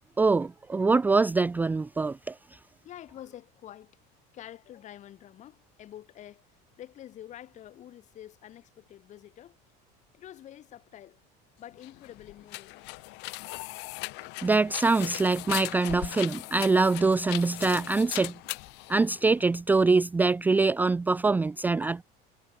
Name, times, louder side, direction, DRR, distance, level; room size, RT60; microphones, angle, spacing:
voice 1, 0.2-2.3 14.4-18.3 18.9-22.0, right 3 dB, 10° right, 0.5 m, -24 dB
voice 2, 2.8-3.9 4.3-6.4 6.8-9.5 10.1-11.2 11.6-12.8, left 12 dB, 35° left, 6.8 m, -47 dB
sound 1, 11.7-19.6, left 26 dB, 65° left, 1.1 m, -39 dB
cardioid pair, 165°, 20 cm